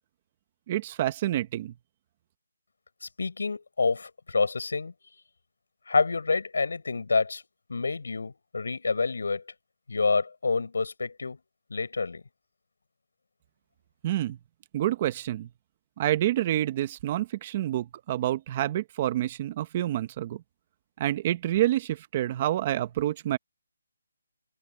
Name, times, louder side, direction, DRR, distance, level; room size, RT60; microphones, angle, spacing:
voice 1, 0.7-1.7 14.0-14.4 14.7-15.5 16.0-20.4 21.0-23.4, right 13 dB, 25° right, 1.1 m, -28 dB
voice 2, 3.0-4.9 5.9-7.4 7.7-9.4 9.9-11.4 11.7-12.2, left 4 dB, 75° left, 5.6 m, -28 dB
hypercardioid pair, 170°, 0 cm